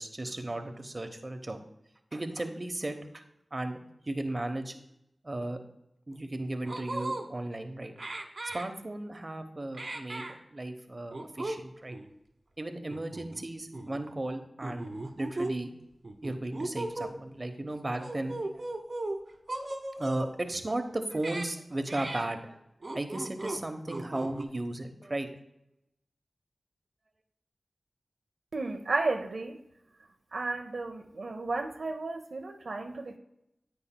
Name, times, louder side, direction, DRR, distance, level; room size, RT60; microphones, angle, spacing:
voice 1, 0.0-1.6 2.1-3.2 3.5-3.8 4.1-4.8 5.2-5.6 6.1-7.9 8.4-12.0 12.6-14.9 15.2-15.7 16.2-18.6 20.0-22.6 22.9-25.3, right 1 dB, 35° right, 7 dB, 0.9 m, -35 dB
sound 1, 6.1-6.2 6.6-7.2 8.0-8.7 9.7-10.4 11.1-11.6 11.9-12.1 12.9-13.4 13.7-14.0 14.6-15.5 16.0-17.1 17.9-19.2 19.5-20.3 21.1-21.5 21.9-22.3 22.8-23.6 23.9-24.4, right 2 dB, 55° right, 1.1 m, -37 dB
voice 2, 28.5-29.6 30.3-33.2, right 3 dB, 75° right, 4 dB, 0.6 m, -33 dB
10.0 x 8.5 x 2.2 m, 0.83 s
wide cardioid pair, 55°, 0 cm